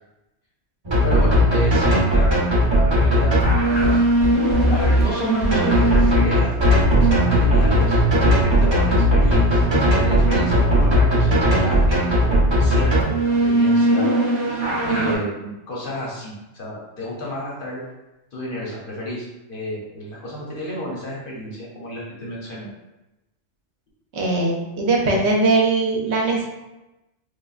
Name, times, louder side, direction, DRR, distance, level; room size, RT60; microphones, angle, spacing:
sound 1, 0.8-15.1, equal, 30° right, 0.5 m, -17 dB
voice 1, 1.0-4.0 4.7-14.1 14.8-17.8 18.3-22.7, left 1 dB, 55° left, -4 dB, 0.7 m, -31 dB
voice 2, 24.1-26.4, right 3 dB, 65° right, -1 dB, 0.8 m, -20 dB
3.4 x 2.1 x 2.3 m, 0.99 s
omnidirectional pair, 1.3 m